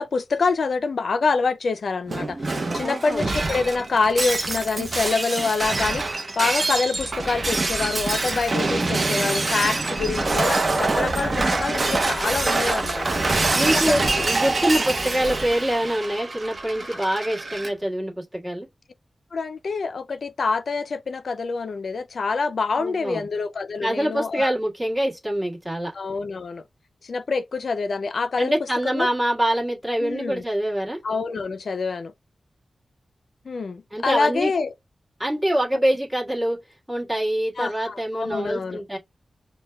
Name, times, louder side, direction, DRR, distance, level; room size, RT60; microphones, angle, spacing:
voice 1, 0.0-13.2 13.6-14.3 16.9-17.0 19.3-24.5 25.9-26.6 27.0-28.5 28.8-29.1 30.0-30.4 31.0-32.1 33.5-34.7 37.6-38.8, left 4 dB, 65° left, 0.3 m, -26 dB
Shatter, 2.1-17.7, right 2 dB, 40° right, 0.6 m, -25 dB
voice 2, 2.8-3.3 13.5-18.7 22.8-23.2 23.8-25.9 28.4-31.0 33.9-34.5 35.2-36.6 36.9-39.0, right 1 dB, 15° right, 1.5 m, -25 dB
6.2 x 2.1 x 2.2 m
wide cardioid pair, 105°, 0 cm